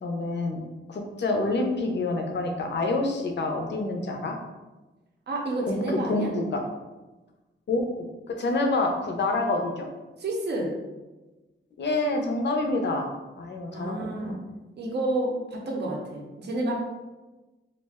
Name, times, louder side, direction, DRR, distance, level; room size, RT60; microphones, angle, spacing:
voice 1, 0.0-0.6 0.9-4.4 5.7-6.6 7.7-9.9 11.8-13.1 13.4-14.4, left 2 dB, 60° left, 3 dB, 0.5 m, -27 dB
voice 2, 5.3-6.3 10.2-10.7 13.7-14.4 14.8-16.7, right 1 dB, 55° right, -1 dB, 0.6 m, -29 dB
2.3 x 2.1 x 3.4 m, 1.1 s
wide cardioid pair, 95°, 21 cm